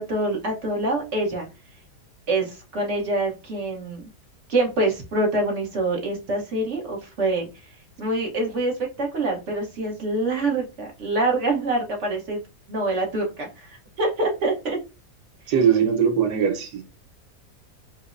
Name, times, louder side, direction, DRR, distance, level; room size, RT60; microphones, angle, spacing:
voice 1, 0.0-1.5 2.3-4.0 4.5-7.5 8.0-8.7 9.0-12.4 12.7-14.8, right 2 dB, 50° right, 1.2 m, -25 dB
voice 2, 15.5-16.8, right 7 dB, 80° right, 1.4 m, -20 dB
4.9 x 2.1 x 2.5 m
omnidirectional pair, 1.7 m